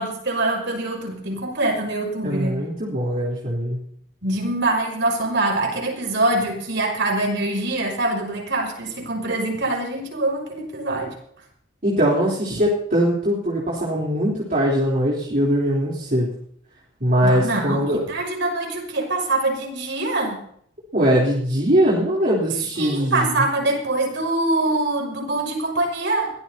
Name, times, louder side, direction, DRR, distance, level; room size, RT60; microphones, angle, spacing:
voice 1, 0.0-2.6 4.2-11.1 17.2-20.4 22.8-26.3, right 2 dB, 65° right, 1 dB, 6.8 m, -24 dB
voice 2, 2.2-3.8 11.8-16.3 17.0-18.0 20.9-23.3, equal, 45° right, -4 dB, 3.7 m, -21 dB
22.5 x 18.5 x 2.9 m, 0.66 s
head